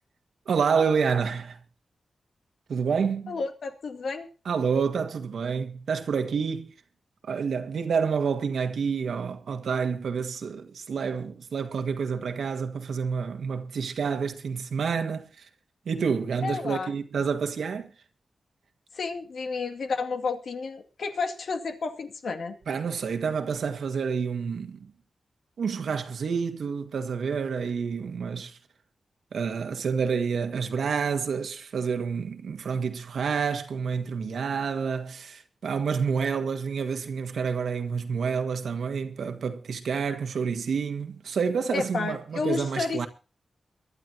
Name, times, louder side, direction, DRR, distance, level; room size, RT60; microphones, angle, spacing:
voice 1, 0.4-1.6 2.7-3.4 4.4-6.7 7.2-15.5 15.8-17.9 22.7-24.9 25.6-28.6 29.3-43.1, right 6 dB, 85° right, 1.7 m, -28 dB
voice 2, 3.3-4.3 16.4-16.9 18.9-22.6 41.7-43.1, left 4 dB, 75° left, 2.1 m, -31 dB
23.0 x 11.5 x 2.8 m
cardioid pair, 75°, 0 cm